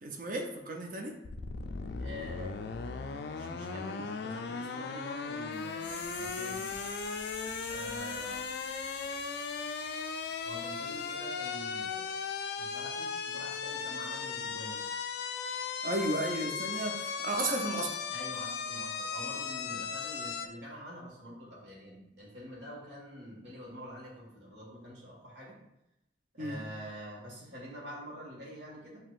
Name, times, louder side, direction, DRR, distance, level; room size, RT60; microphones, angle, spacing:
voice 1, 0.0-1.2 15.8-18.0 26.4-26.7, right 1 dB, 50° right, 2 dB, 0.6 m, -34 dB
sound 1, 1.2-20.5, left 5 dB, 60° left, 0.3 m, -37 dB
voice 2, 2.0-2.5 3.4-6.7 7.7-8.4 10.4-12.2 12.6-14.8 18.1-25.6 26.3-29.0, equal, 75° right, -4 dB, 1.7 m, -46 dB
sound 2, 5.5-11.2 11.4-11.5, left 2 dB, 10° left, 0.9 m, -46 dB
7.2 x 2.9 x 2.4 m, 0.86 s
head